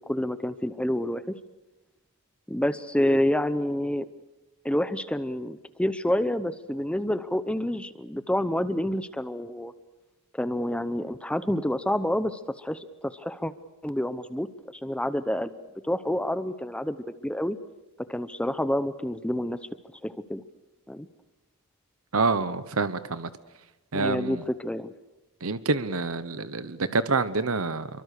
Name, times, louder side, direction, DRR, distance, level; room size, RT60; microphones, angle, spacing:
voice 1, 0.1-1.2 2.5-4.1 4.6-9.7 10.3-13.5 13.8-14.5 14.8-15.5 15.8-17.0 17.2-17.6 18.1-19.6 20.0-20.4 20.9-21.1 23.9-24.9, left 1 dB, 5° left, 0.8 m, -28 dB
voice 2, 22.1-23.3 23.9-24.4 25.4-27.9, right 3 dB, 70° right, 1.0 m, -27 dB
28.0 x 24.0 x 6.7 m
head